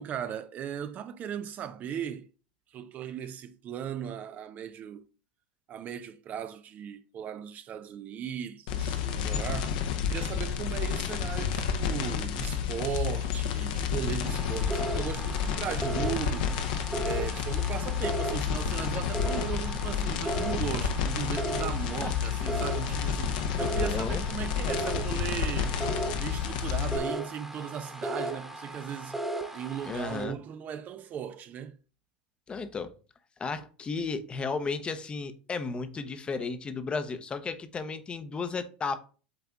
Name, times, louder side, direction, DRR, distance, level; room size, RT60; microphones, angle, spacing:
voice 1, 0.0-2.3 2.7-5.0 5.7-25.8 26.2-29.2 29.5-31.8, right 9 dB, 35° right, 0.5 m, -37 dB
sound 1, 8.7-27.0, left 7 dB, 60° left, 0.9 m, -30 dB
sound 2, 14.2-30.2, right 2 dB, 5° right, 1.2 m, -36 dB
voice 2, 23.8-24.2 29.9-30.3 32.5-32.9 33.4-39.0, left 4 dB, 20° left, 0.8 m, -34 dB
8.0 x 3.4 x 3.6 m
hypercardioid pair, 90°, 5 cm